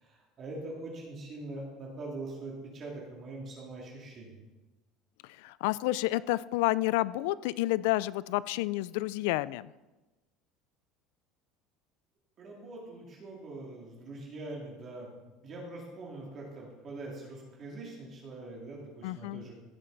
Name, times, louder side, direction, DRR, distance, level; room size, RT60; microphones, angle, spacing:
voice 1, 0.0-4.3 12.4-15.1 15.4-19.5, right 2 dB, 30° right, -2 dB, 2.4 m, -43 dB
voice 2, 5.2-9.7 19.0-19.5, left 18 dB, 75° left, 19 dB, 0.3 m, -30 dB
15.5 x 7.8 x 3.9 m, 1.1 s
cardioid pair, 175°, 0 cm